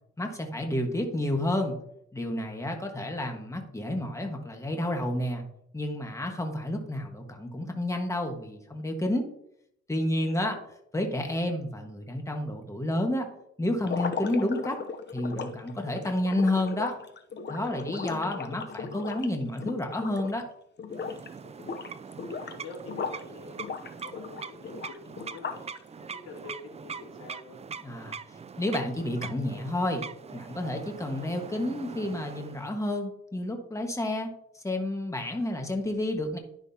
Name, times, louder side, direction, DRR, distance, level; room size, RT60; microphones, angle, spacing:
voice 1, 0.2-1.7 2.1-5.4 5.7-9.3 9.9-10.6 10.9-13.3 13.6-14.8 15.1-17.0 17.5-20.5 27.8-28.2 28.6-30.0 30.3-34.3 34.5-36.4, left 1 dB, 10° left, 3 dB, 1.4 m, -30 dB
voice 2, 10.2-10.7 21.4-25.6 26.0-27.6, left 2 dB, 55° left, -3 dB, 2.8 m, -47 dB
sound 1, 13.8-20.5 20.8-21.3 21.6-23.2 23.6-25.8, left 5 dB, 35° left, 0.7 m, -37 dB
sound 2, 20.9-32.7, right 6 dB, 20° right, 0.3 m, -42 dB
10.5 x 6.1 x 2.8 m, 0.73 s
cardioid pair, 90°, 30 cm